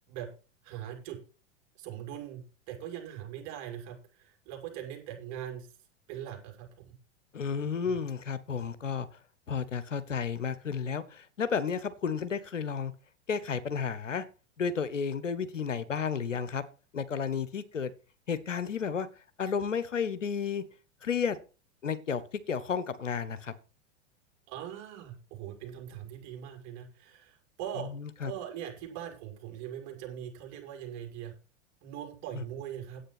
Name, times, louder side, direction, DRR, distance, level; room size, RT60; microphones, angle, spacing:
voice 1, 0.6-1.2 1.8-5.7 6.1-6.9 7.6-8.0 24.5-27.9 28.2-31.3 31.8-33.0, right 10 dB, 45° right, 2 dB, 5.8 m, -41 dB
voice 2, 7.3-9.1 9.5-12.9 13.3-14.2 14.6-16.6 16.9-17.9 18.3-19.1 19.4-20.6 21.0-21.4 21.8-23.5 27.9-28.3 32.3-32.4, left 6 dB, 90° left, 14 dB, 1.3 m, -32 dB
10.0 x 8.8 x 6.0 m, 0.34 s
hypercardioid pair, 100°, 36 cm